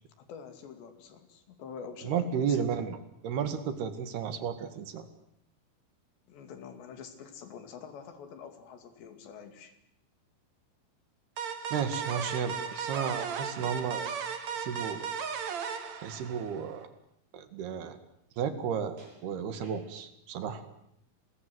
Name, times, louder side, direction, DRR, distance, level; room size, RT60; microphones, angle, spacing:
voice 1, 0.2-2.7 6.3-9.8, left 6 dB, 90° left, 8 dB, 4.9 m, -46 dB
voice 2, 2.0-3.0 3.2-5.1 11.7-14.1 14.6-15.1 16.0-16.9 17.3-18.0 18.4-20.6, right 7 dB, 70° right, 11 dB, 3.8 m, -33 dB
sound 1, 11.4-16.8, right 6 dB, 50° right, 2.7 m, -36 dB
sound 2, 11.7-13.0 15.9-16.0 16.7-16.8 19.0-20.0, right 2 dB, 90° right, 9.0 m, -56 dB
29.5 x 22.0 x 7.9 m, 0.76 s
omnidirectional pair, 4.9 m